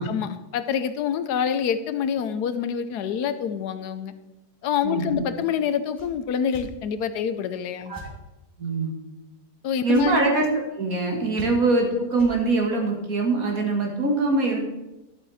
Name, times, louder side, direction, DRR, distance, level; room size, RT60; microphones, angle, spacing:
voice 1, 0.0-4.1 4.6-7.9 9.6-10.2, left 8 dB, 85° left, 11 dB, 1.3 m, -26 dB
voice 2, 4.8-5.3 7.9-8.0 8.6-8.9 9.8-10.5 10.8-14.6, right 3 dB, 60° right, 1 dB, 2.3 m, -23 dB
sound 1, 5.9-6.1 6.5-6.7 7.9-8.1 9.9-10.1 11.3-11.8 12.1-12.3, left 1 dB, 10° right, 2.0 m, -42 dB
11.5 x 8.2 x 4.2 m, 0.99 s
omnidirectional pair, 1.7 m